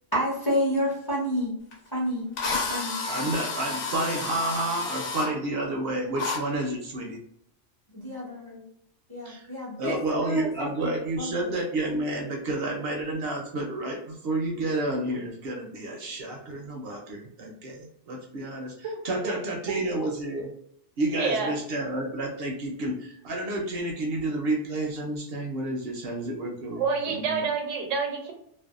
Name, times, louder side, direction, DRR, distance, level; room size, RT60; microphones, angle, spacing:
voice 1, 0.1-1.5 1.9-3.0 8.0-8.6 9.1-10.9 11.2-11.5, equal, 25° left, -5 dB, 0.6 m, -29 dB
Drill, 1.7-1.8 2.4-5.3 6.2-6.4, left 4 dB, 75° left, 1.0 m, -31 dB
voice 2, 3.1-7.2 9.2-9.5 9.8-20.5 21.0-27.4, right 2 dB, 65° right, 1 dB, 0.7 m, -30 dB
voice 3, 21.2-21.5 26.7-28.3, right 5 dB, 85° right, 2 dB, 1.0 m, -28 dB
2.5 x 2.1 x 2.3 m, 0.72 s
omnidirectional pair, 1.3 m